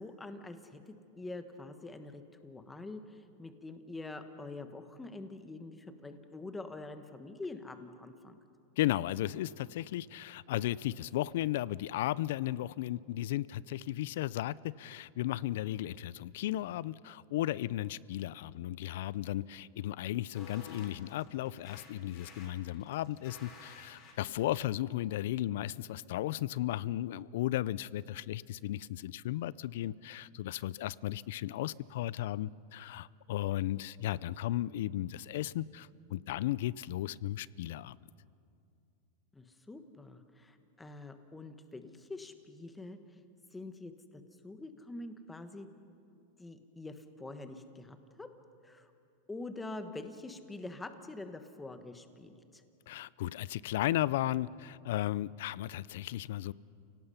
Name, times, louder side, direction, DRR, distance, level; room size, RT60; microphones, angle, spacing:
voice 1, 0.0-8.4 39.3-43.0 43.5-43.9 44.4-45.7 46.4-48.3 48.6-48.9 49.3-52.6, left 2 dB, 10° left, 8 dB, 1.2 m, -45 dB
voice 2, 8.8-38.0 52.9-56.5, left 14 dB, 70° left, 21 dB, 0.4 m, -35 dB
sound 1, 20.3-24.5, left 4 dB, 40° left, 4.9 m, -53 dB
30.0 x 17.5 x 5.7 m, 2.5 s
supercardioid pair, 140°, 0 cm